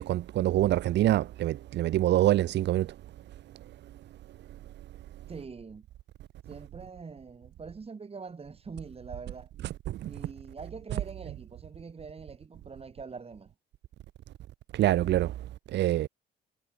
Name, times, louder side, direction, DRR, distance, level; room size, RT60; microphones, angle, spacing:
voice 1, 0.0-3.0 9.9-10.1 14.7-15.3 15.7-16.1, right 13 dB, 60° right, 0.4 m, -25 dB
voice 2, 5.3-5.9 6.5-9.5 10.0-13.5, right 5 dB, 30° right, 2.1 m, -44 dB
cardioid pair, 90°, 20 cm